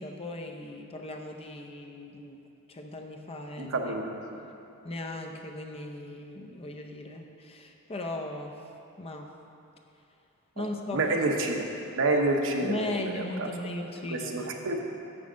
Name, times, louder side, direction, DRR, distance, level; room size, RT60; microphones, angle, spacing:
voice 1, 0.0-2.4 2.7-3.8 4.8-8.6 9.0-9.3 10.6-11.1 12.6-14.5, left 2 dB, 25° left, 3 dB, 0.5 m, -37 dB
voice 2, 3.6-4.4 10.6-10.7 10.9-13.5 14.0-14.8, right 2 dB, 60° right, 2 dB, 0.8 m, -29 dB
7.0 x 6.2 x 6.2 m, 2.8 s
head